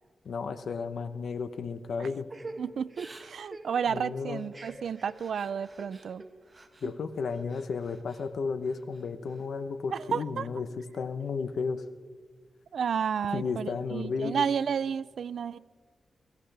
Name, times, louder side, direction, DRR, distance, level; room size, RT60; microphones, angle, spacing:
voice 1, 0.2-2.3 3.9-4.4 6.8-11.8 13.3-14.4, left 5 dB, 75° left, 11 dB, 0.9 m, -33 dB
Crying sobbing / Breathing, 2.3-6.9 7.3-8.3 8.7-9.4, right 2 dB, 30° right, 1.5 m, -47 dB
voice 2, 2.6-6.2 9.9-10.5 12.7-15.6, right 7 dB, 80° right, 18 dB, 0.4 m, -31 dB
21.5 x 17.0 x 3.4 m, 1.5 s
wide cardioid pair, 95°, 0 cm